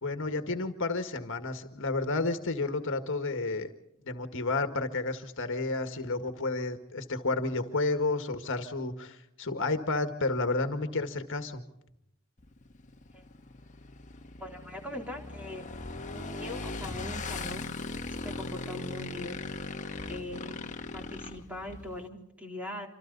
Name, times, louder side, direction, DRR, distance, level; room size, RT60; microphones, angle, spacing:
voice 1, 0.0-3.7 4.1-11.6, left 3 dB, 60° left, 7 dB, 1.9 m, -31 dB
Motorcycle / Engine, 12.4-22.1, left 3 dB, 35° left, 1.5 m, -39 dB
voice 2, 14.4-15.7 16.1-17.7 18.1-19.4 20.1-20.6 20.9-22.9, left 1 dB, 5° right, 1 dB, 3.7 m, -41 dB
27.0 x 26.5 x 4.1 m, 0.80 s
head